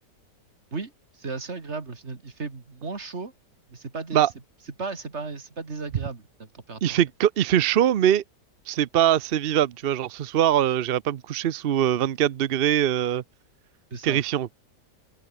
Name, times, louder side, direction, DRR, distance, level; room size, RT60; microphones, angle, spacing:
voice 1, 0.7-3.3 3.7-4.3 4.8-7.0 13.9-14.2, right 4 dB, 40° right, 2.7 m, -35 dB
voice 2, 6.8-8.2 8.7-13.2 14.0-14.5, right 11 dB, 70° right, 0.5 m, -22 dB
open air
omnidirectional pair, 1.8 m